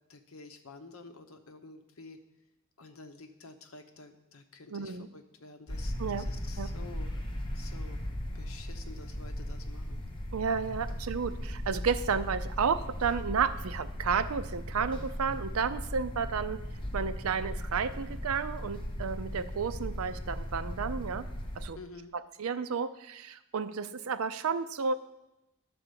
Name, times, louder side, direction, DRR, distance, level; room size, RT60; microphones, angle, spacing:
voice 1, 0.1-2.2 2.8-7.2 7.5-8.0 8.3-10.0 21.7-22.1, left 3 dB, 70° left, 6 dB, 0.9 m, -50 dB
voice 2, 4.7-5.1 6.0-6.3 6.6-6.7 10.3-16.6 16.9-21.2 21.6-21.8 22.4-25.0, right 6 dB, 75° right, 12 dB, 0.5 m, -32 dB
sound 1, 5.7-21.7, equal, 25° left, 1.0 m, -37 dB
11.5 x 4.2 x 6.8 m, 0.95 s
head